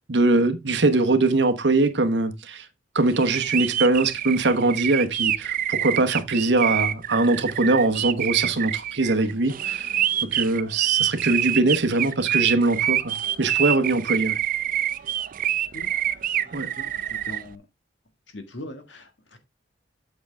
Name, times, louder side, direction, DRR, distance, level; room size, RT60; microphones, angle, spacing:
voice 1, 0.1-2.6 2.9-9.9 10.3-14.4 16.5-16.7, right 2 dB, 70° right, 1.2 m, -22 dB
sound 1, 3.1-17.4, right 11 dB, 50° right, 0.4 m, -26 dB
voice 2, 16.4-16.9 17.3-17.6 18.3-19.4, left 1 dB, 90° left, 1.8 m, -40 dB
8.0 x 6.3 x 3.4 m
head